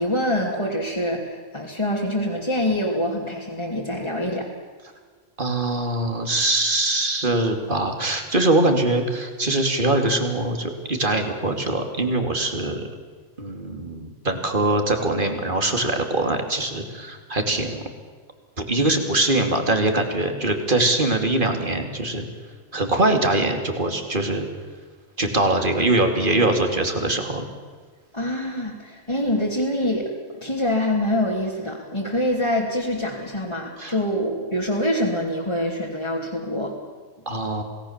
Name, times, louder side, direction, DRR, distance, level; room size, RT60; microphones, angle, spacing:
voice 1, 0.0-4.5 28.1-30.1 30.4-36.8, left 1 dB, 20° left, -5 dB, 2.9 m, -25 dB
voice 2, 5.4-12.8 13.4-17.8 18.6-22.3 22.7-24.5 25.2-27.4 33.8-33.9 37.3-37.6, right 2 dB, 40° right, 5 dB, 2.9 m, -22 dB
28.0 x 18.5 x 7.3 m, 1.5 s
omnidirectional pair, 1.4 m